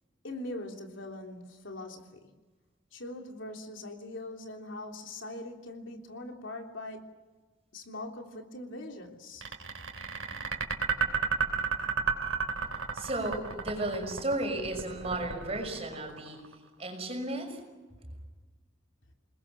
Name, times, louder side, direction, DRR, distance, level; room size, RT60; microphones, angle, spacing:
voice 1, 0.2-2.3 2.9-7.0 7.7-9.4, left 1 dB, 75° left, 2 dB, 3.2 m, -42 dB
sound 1, 9.4-16.5, right 6 dB, 90° right, 3.3 m, -32 dB
voice 2, 12.9-16.4 16.8-17.6, right 1 dB, 30° right, 3 dB, 5.9 m, -34 dB
29.0 x 20.5 x 6.8 m, 1.2 s
head